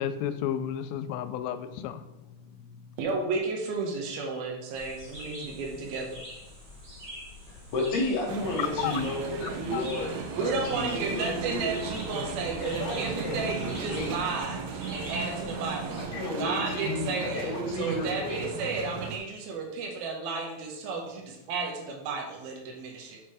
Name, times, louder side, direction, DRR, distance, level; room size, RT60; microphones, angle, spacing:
voice 1, 0.0-2.0 8.8-8.9 9.7-9.8, left 10 dB, 85° left, 11 dB, 2.4 m, -31 dB
voice 2, 3.0-6.4 10.4-16.0 16.4-23.2, right 4 dB, 85° right, 1 dB, 2.9 m, -33 dB
sound 1, 4.7-16.0, left 1 dB, 35° right, 1.3 m, -45 dB
voice 3, 7.5-11.7 12.6-14.2 16.1-18.5, left 2 dB, 60° left, 0 dB, 2.1 m, -32 dB
sound 2, 8.3-19.2, right 5 dB, 70° right, 2.0 m, -36 dB
6.7 x 4.5 x 4.8 m, 0.94 s
omnidirectional pair, 4.1 m